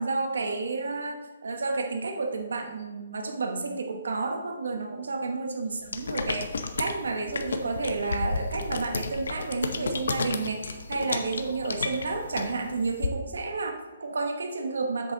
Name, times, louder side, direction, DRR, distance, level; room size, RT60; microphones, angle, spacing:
voice 1, 0.0-15.1, right 3 dB, 90° right, 4 dB, 1.0 m, -31 dB
sound 1, 5.9-13.1, left 4 dB, 75° left, 0.8 m, -32 dB
8.0 x 6.5 x 3.9 m, 1.1 s
hypercardioid pair, 170°, 0 cm